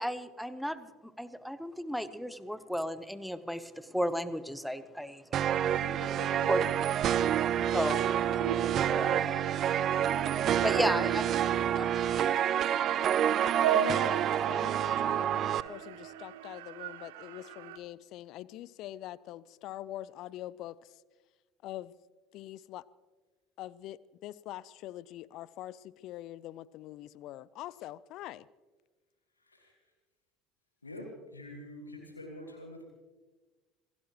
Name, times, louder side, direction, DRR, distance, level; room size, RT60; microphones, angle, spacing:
voice 1, 0.0-5.2 6.5-6.6 7.7-8.0 8.9-9.5 10.6-11.2 11.7-12.4, equal, ahead, 14 dB, 1.0 m, -34 dB
sound 1, 5.3-15.6, right 10 dB, 45° right, 0.5 m, -28 dB
voice 2, 5.4-6.5 29.4-29.8 30.8-32.8, left 1 dB, 85° left, 0 dB, 1.9 m, -46 dB
sound 2, 7.1-17.8, right 9 dB, 65° right, 0.8 m, -38 dB
voice 3, 13.7-20.9 21.6-21.9 22.3-22.8 23.6-28.5, left 14 dB, 55° left, 21 dB, 0.5 m, -44 dB
26.5 x 17.0 x 3.0 m, 1.3 s
figure-of-eight pair, 60°, 0 cm